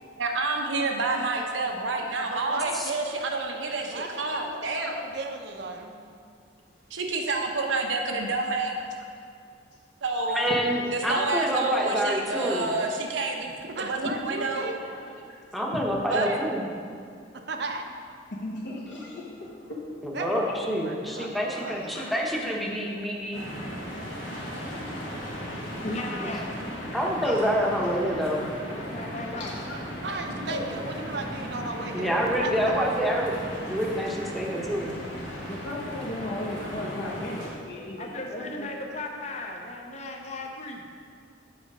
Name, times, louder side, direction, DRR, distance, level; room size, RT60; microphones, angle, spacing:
voice 1, 0.2-5.0 6.9-8.8 10.0-10.4 10.9-13.5 13.8-14.0 14.2-14.7 16.1-16.4, right 3 dB, 90° right, 2 dB, 0.9 m, -28 dB
voice 2, 2.3-2.8 3.8-4.6 4.8-6.0 13.6-14.8 17.3-17.9 20.1-22.0 29.7-33.0 36.2-36.9, right 3 dB, 60° right, 4 dB, 0.7 m, -36 dB
voice 3, 10.3-12.7 15.5-16.6 20.2-23.5 26.9-28.5 31.9-33.3 33.7-34.9, equal, ahead, -2 dB, 0.8 m, -27 dB
voice 4, 14.8-15.4 18.3-20.6 21.2-22.2 22.5-22.8 27.2-27.4 28.8-29.1 29.4-29.5 30.4-30.6 33.7-34.1 34.6-38.7, left 1 dB, 65° left, -6 dB, 1.0 m, -38 dB
sound 1, 23.3-37.5, equal, 85° left, 2.1 m, -36 dB
voice 5, 25.8-26.6 28.7-29.6 38.0-40.8, left 2 dB, 35° left, 2 dB, 0.7 m, -36 dB
7.7 x 5.0 x 5.3 m, 2.3 s
head